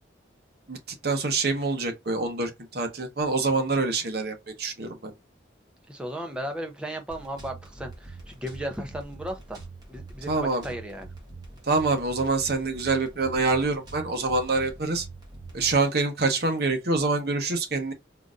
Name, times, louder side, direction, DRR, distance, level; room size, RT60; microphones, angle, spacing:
voice 1, 0.7-5.1 10.3-10.6 11.7-15.0 15.5-17.9, right 3 dB, 55° right, 0.9 m, -26 dB
voice 2, 5.9-9.6 9.9-11.1, right 1 dB, 5° right, 0.6 m, -35 dB
sound 1, 7.1-15.7, right 3 dB, 20° right, 1.1 m, -44 dB
3.8 x 2.5 x 2.4 m
head